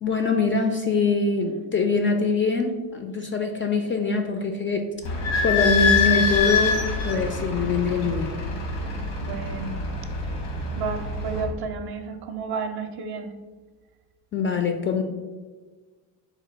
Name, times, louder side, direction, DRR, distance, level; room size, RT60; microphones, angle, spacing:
voice 1, 0.0-4.9 5.4-6.8 7.0-8.3 14.3-15.0, left 4 dB, 30° left, 5 dB, 0.3 m, -23 dB
Idling / Squeak, 5.0-11.4, left 4 dB, 85° left, 1.1 m, -25 dB
voice 2, 9.2-9.8 10.8-13.3, right 5 dB, 50° right, 7 dB, 0.6 m, -32 dB
4.0 x 2.2 x 4.4 m, 1.4 s
supercardioid pair, 60°, 48 cm